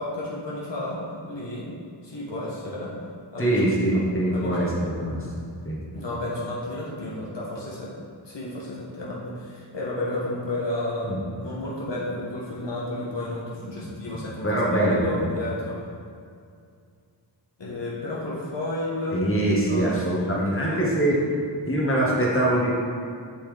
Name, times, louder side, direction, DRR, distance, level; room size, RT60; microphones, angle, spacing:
voice 1, 0.0-1.7 2.0-3.0 3.3-3.6 3.9-4.0 4.3-4.9 5.9-7.9 8.2-15.9 17.6-19.2 19.7-20.4 20.7-20.8, left 1 dB, 65° left, -6 dB, 1.4 m, -32 dB
voice 2, 3.4-5.3 5.6-5.8 11.0-11.2 13.8-15.1 19.1-21.2 21.6-22.7, right 1 dB, 25° left, -5 dB, 1.6 m, -23 dB
7.0 x 6.0 x 3.4 m, 2.3 s
wide cardioid pair, 55°, 46 cm